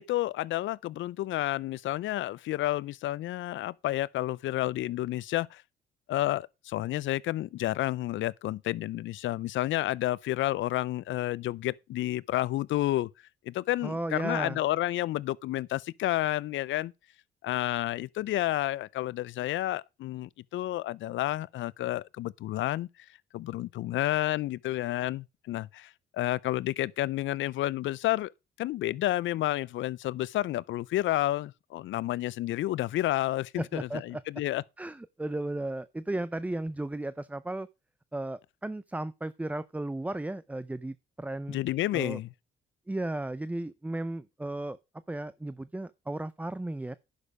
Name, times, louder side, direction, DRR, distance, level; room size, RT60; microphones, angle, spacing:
voice 1, 0.0-5.6 6.1-13.1 13.5-16.9 17.4-22.9 23.3-28.3 28.6-34.6 41.5-42.3, left 15 dB, 75° left, 0.5 m, -30 dB
voice 2, 13.8-14.6 33.6-34.2 34.8-37.7 38.1-41.6 41.9-42.2 42.9-44.8 45.1-46.9, right 1 dB, 5° right, 0.4 m, -35 dB
10.0 x 6.6 x 4.8 m
cardioid pair, 90°, 20 cm